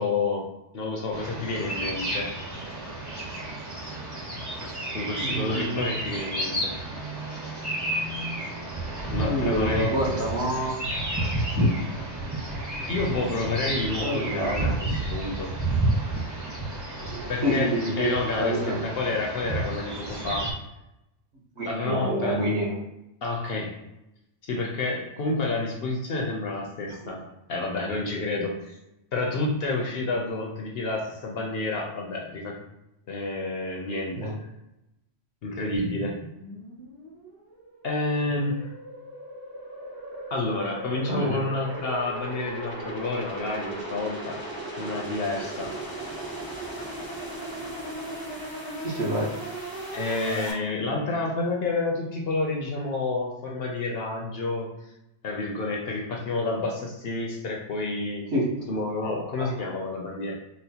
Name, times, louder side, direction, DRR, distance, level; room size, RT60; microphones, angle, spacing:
voice 1, 0.0-2.3 4.9-6.7 9.1-9.9 12.9-15.6 17.3-20.5 21.6-22.5 23.2-23.8 24.4-27.2 27.5-28.8 29.1-32.6 33.1-34.4 35.4-36.2 37.8-38.7 40.3-44.4 44.8-45.7 49.9-54.9 55.2-58.3 58.7-60.3, left 3 dB, 60° left, -1 dB, 0.7 m, -29 dB
sound 1, 1.1-20.5, right 1 dB, 20° right, 0.6 m, -31 dB
voice 2, 5.2-5.8 6.4-6.6 9.2-10.7 14.0-14.5 17.0-18.8 21.6-22.8 26.9-27.1 34.2-34.3 41.1-41.5 48.8-49.3 58.3-59.1 59.4-59.5, right 1 dB, 60° right, -4 dB, 1.3 m, -28 dB
sound 2, 35.7-50.5, right 1 dB, 25° left, 0.5 m, -37 dB
4.2 x 2.1 x 2.8 m, 0.90 s
omnidirectional pair, 1.3 m